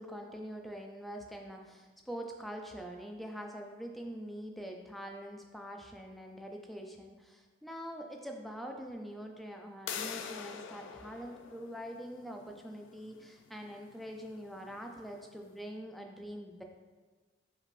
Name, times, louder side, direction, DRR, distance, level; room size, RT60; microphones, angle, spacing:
voice 1, 0.0-16.6, equal, ahead, 1 dB, 0.3 m, -44 dB
sound 1, 9.9-15.5, left 7 dB, 85° left, 0.3 m, -46 dB
5.3 x 3.1 x 2.5 m, 1.3 s
head